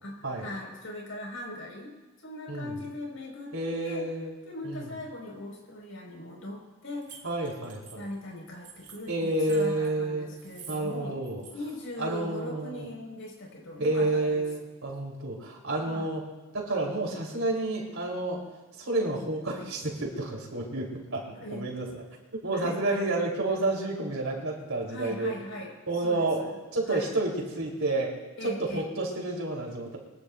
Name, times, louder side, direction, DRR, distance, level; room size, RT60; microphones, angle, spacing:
voice 1, 0.0-1.9 2.2-3.5 3.8-4.1 4.4-7.2 7.9-11.2 11.5-14.4 15.8-16.1 21.3-21.6 22.5-23.0 24.9-25.7 26.0-26.5 26.9-27.1 28.4-28.9, left 1 dB, 70° left, -1 dB, 5.1 m, -39 dB
voice 2, 3.5-4.4 4.6-4.9 7.2-8.0 9.1-10.3 10.7-11.4 12.0-12.9 13.8-16.2 16.5-18.4 18.8-21.9 22.4-25.3 25.9-30.0, right 2 dB, 70° right, -1 dB, 3.7 m, -30 dB
sound 1, 7.0-9.9 10.3-11.0 11.2-11.8, right 7 dB, 35° right, 3.2 m, -48 dB
23.5 x 16.0 x 2.6 m, 1.2 s
head